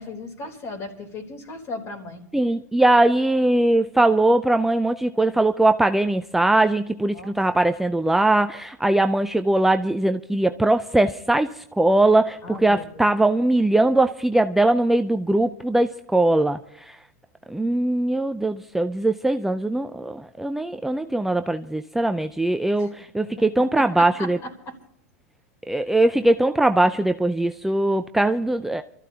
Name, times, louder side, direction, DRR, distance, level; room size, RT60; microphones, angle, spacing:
voice 1, 0.0-2.2 7.1-7.3 12.4-13.0 22.8-22.9 23.2-24.8, left 2 dB, 35° left, 5 dB, 3.6 m, -36 dB
voice 2, 2.3-17.0 17.5-24.4 25.7-28.8, right 2 dB, 5° right, 8 dB, 0.5 m, -21 dB
28.5 x 14.0 x 2.8 m, 0.73 s
hypercardioid pair, 115°, 8 cm